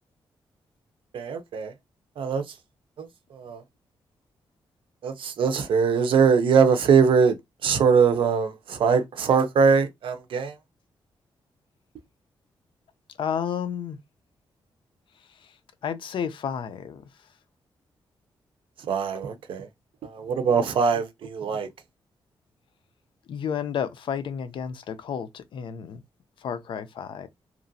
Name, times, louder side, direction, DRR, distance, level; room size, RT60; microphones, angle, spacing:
voice 1, 1.1-1.7 2.2-2.4 3.0-3.6 5.0-7.4 7.6-10.6 18.9-19.7 20.0-21.7, right 6 dB, 70° right, 0.6 m, -22 dB
voice 2, 13.2-14.0 15.8-17.0 23.3-26.0 26.4-27.3, left 8 dB, 70° left, 0.5 m, -31 dB
2.9 x 2.5 x 2.6 m
wide cardioid pair, 145°, 9 cm